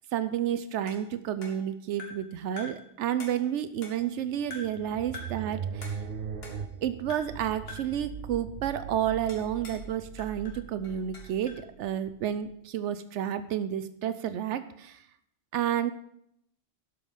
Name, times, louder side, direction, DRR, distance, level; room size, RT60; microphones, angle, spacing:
voice 1, 0.1-6.0 6.8-15.0 15.5-15.9, right 10 dB, 85° right, 12 dB, 0.9 m, -31 dB
sound 1, 0.9-2.3 2.6-2.9 3.2-4.2 4.5-4.8 5.1-5.5 5.8-6.8 7.1-7.4 7.7-8.0 9.3-9.9 10.2-11.7, left 2 dB, 60° left, 2.1 m, -46 dB
sound 2, 4.2-12.5, right 7 dB, 60° right, 0.8 m, -40 dB
12.0 x 6.2 x 5.4 m, 0.73 s
omnidirectional pair, 1.2 m